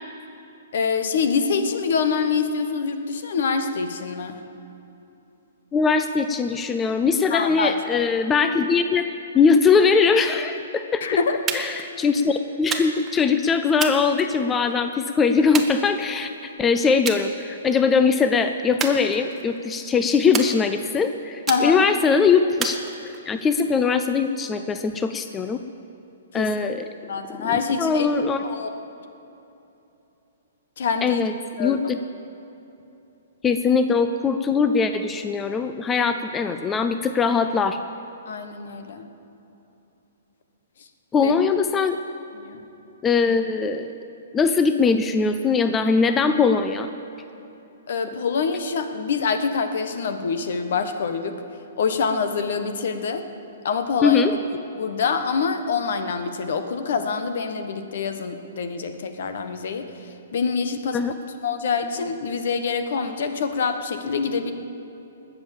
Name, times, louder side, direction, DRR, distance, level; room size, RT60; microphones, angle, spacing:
voice 1, 0.7-4.4 7.3-8.1 11.0-11.4 21.5-21.8 26.3-26.5 27.1-28.1 28.4-28.7 30.8-31.2 31.6-31.8 38.3-39.1 41.2-41.3 42.4-42.6 47.9-51.4 51.8-53.2 53.6-54.3 54.8-59.9 60.3-61.0 61.4-64.5, left 5 dB, 65° left, 8 dB, 1.3 m, -25 dB
voice 2, 5.7-11.0 11.5-25.6 26.3-26.8 27.4-28.4 31.0-31.3 31.6-32.0 33.4-37.8 41.1-42.0 43.0-43.9 44.3-46.9 54.0-54.3 60.9-61.1, left 5 dB, 15° left, 8 dB, 0.5 m, -21 dB
sound 1, 11.5-11.9 12.7-13.2 13.8-14.7 15.5-16.4 17.1-17.3 17.7-18.0 18.8-19.6 20.3-21.0 21.5-22.0 22.6-23.4, right 6 dB, 15° right, 1.1 m, -31 dB
20.0 x 7.2 x 7.3 m, 2.9 s
hypercardioid pair, 140°, 0 cm